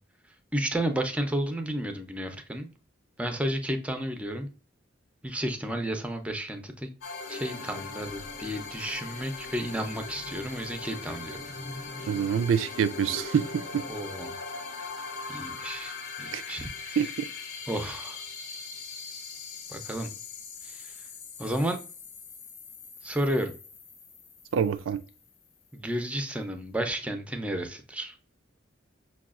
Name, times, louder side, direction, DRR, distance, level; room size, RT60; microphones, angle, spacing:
voice 1, 0.5-2.7 3.2-4.5 5.2-6.9 7.3-11.4 12.0-12.1 13.9-14.4 15.3-17.1 17.7-18.2 19.7-20.1 20.6-20.9 21.4-21.8 23.0-23.5 25.7-28.1, right 1 dB, 5° right, 0.5 m, -32 dB
sound 1, 7.0-25.5, left 4 dB, 75° left, 0.9 m, -40 dB
voice 2, 12.0-13.5 13.7-13.8 16.3-16.4 17.0-17.1 24.5-25.0, right 7 dB, 80° right, 0.3 m, -25 dB
5.7 x 2.3 x 2.4 m
head